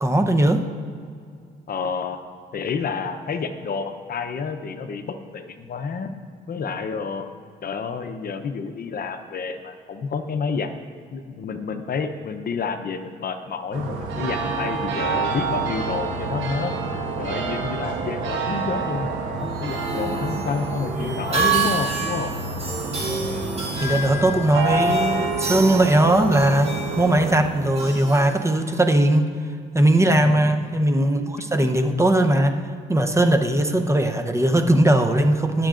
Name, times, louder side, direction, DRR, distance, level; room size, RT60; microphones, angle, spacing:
voice 1, 0.0-0.6 23.8-29.3 29.7-32.6 32.9-35.7, right 1 dB, 15° right, 5 dB, 0.7 m, -19 dB
voice 2, 1.7-2.2 2.5-6.1 6.5-7.3 7.6-10.7 11.1-16.7 17.2-22.3 25.5-25.6 30.1-30.6, left 5 dB, 50° left, 8 dB, 0.7 m, -29 dB
sound 1, 13.7-27.5, right 3 dB, 80° right, 1.3 m, -28 dB
sound 2, 19.4-28.9, right 4 dB, 30° right, 1.9 m, -29 dB
19.5 x 7.5 x 2.5 m, 2.3 s
cardioid pair, 90°, 20 cm